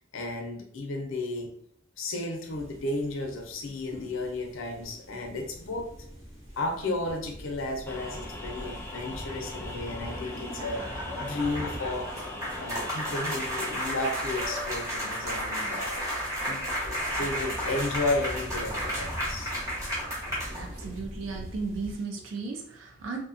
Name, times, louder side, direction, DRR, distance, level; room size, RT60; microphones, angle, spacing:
voice 1, 0.1-1.5 2.0-5.9 6.6-12.1 12.6-16.0 16.4-19.5, left 2 dB, 85° left, 4 dB, 0.6 m, -33 dB
sound 1, 2.5-22.0, equal, 35° right, 1.0 m, -44 dB
sound 2, 7.9-13.9, left 2 dB, 10° left, 0.4 m, -41 dB
sound 3, 10.0-21.0, equal, 15° right, 1.0 m, -33 dB
voice 2, 20.5-23.2, right 4 dB, 80° right, 3 dB, 0.4 m, -35 dB
2.6 x 2.2 x 2.5 m, 0.66 s
head